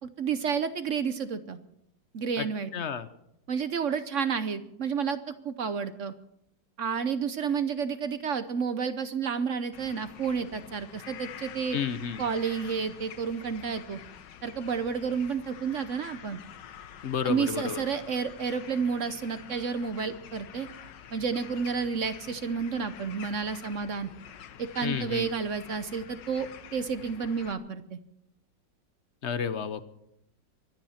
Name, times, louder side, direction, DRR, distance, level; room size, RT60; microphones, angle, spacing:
voice 1, 0.0-1.6 2.1-2.7 3.5-6.1 6.8-11.8 12.2-14.0 14.4-16.4 17.2-20.7 21.1-24.1 24.6-28.0, right 6 dB, 55° right, 11 dB, 1.0 m, -30 dB
voice 2, 2.7-3.1 11.7-12.2 17.0-17.8 24.8-25.3 29.2-29.8, left 7 dB, 50° left, 13 dB, 0.9 m, -31 dB
sound 1, 9.7-27.5, left 9 dB, 80° left, 1.6 m, -47 dB
24.0 x 10.5 x 5.8 m, 0.77 s
omnidirectional pair, 2.0 m